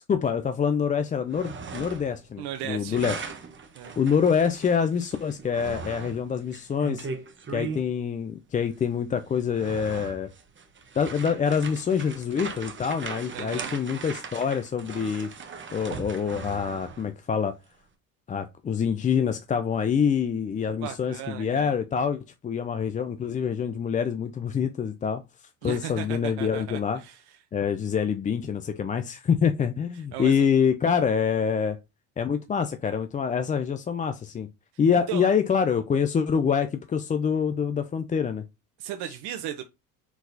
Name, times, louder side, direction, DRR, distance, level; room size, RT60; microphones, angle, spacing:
voice 1, 0.1-3.2 4.0-7.1 7.5-10.3 10.9-15.3 15.7-17.5 18.3-25.2 25.6-27.0 27.5-31.8 32.2-34.5 34.8-38.4, left 7 dB, 20° left, 0.4 m, -26 dB
sound 1, 1.1-2.2 2.5-7.9 8.7-8.8 9.3-17.1, right 5 dB, 25° right, 1.1 m, -39 dB
voice 2, 2.4-3.0 3.7-4.0 13.3-13.7 20.8-21.7 25.6-27.2 30.1-30.5 35.1-35.3 38.8-39.6, right 11 dB, 60° right, 0.8 m, -36 dB
4.6 x 3.9 x 2.7 m
hypercardioid pair, 70°, 44 cm